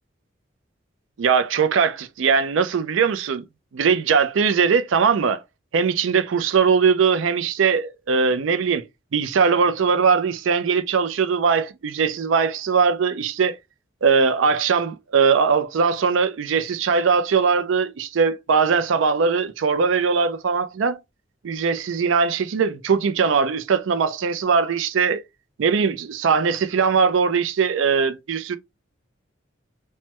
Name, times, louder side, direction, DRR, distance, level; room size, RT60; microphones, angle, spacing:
voice 1, 1.2-3.4 3.7-5.4 5.7-8.8 9.1-13.6 14.0-21.0 21.4-25.2 25.6-28.6, right 5 dB, 75° right, 0.4 m, -20 dB
3.2 x 2.1 x 2.8 m
head